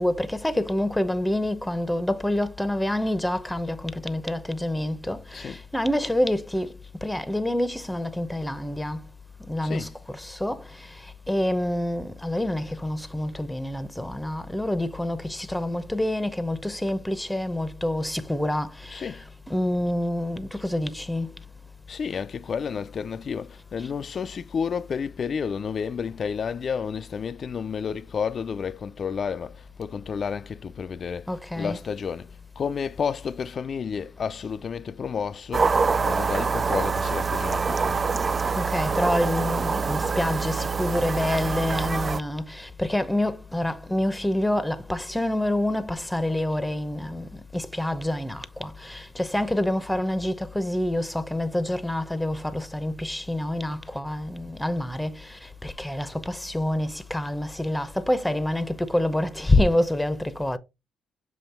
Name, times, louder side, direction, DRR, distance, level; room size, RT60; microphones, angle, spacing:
voice 1, 0.0-6.7 7.0-9.1 9.5-21.3 31.3-31.8 38.6-60.6, left 1 dB, 5° left, 0.8 m, -27 dB
voice 2, 9.6-9.9 18.9-19.2 21.9-31.3 31.6-32.3 32.6-35.7 36.0-38.0, left 6 dB, 50° left, 0.5 m, -31 dB
sound 1, 35.5-42.2, right 5 dB, 35° right, 0.4 m, -25 dB
7.2 x 3.0 x 4.3 m
cardioid pair, 90°, 0 cm